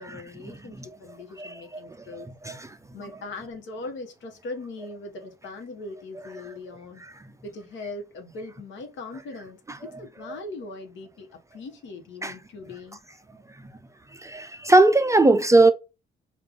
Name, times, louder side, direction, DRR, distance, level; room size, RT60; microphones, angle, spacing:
voice 1, 0.0-2.3 2.9-7.0 7.4-13.0, left 3 dB, 70° left, 1.1 m, -40 dB
voice 2, 14.2-15.7, right 2 dB, 15° right, 0.4 m, -18 dB
3.4 x 2.4 x 3.4 m
cardioid pair, 90°, 20 cm